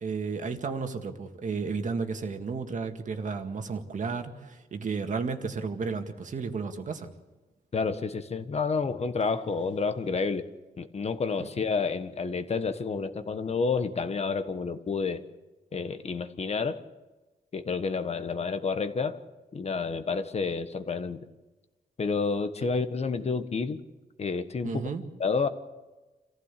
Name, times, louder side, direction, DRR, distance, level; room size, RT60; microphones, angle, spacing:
voice 1, 0.0-7.1 11.4-11.5 24.6-25.0, right 5 dB, 50° right, 6 dB, 2.0 m, -33 dB
voice 2, 7.7-10.5 10.8-15.2 15.7-16.8 17.5-19.2 19.5-21.2 22.0-23.8 24.2-24.9 25.2-25.5, left 4 dB, 40° left, 9 dB, 1.4 m, -29 dB
27.0 x 15.0 x 8.5 m, 1.2 s
cardioid pair, 115°, 16 cm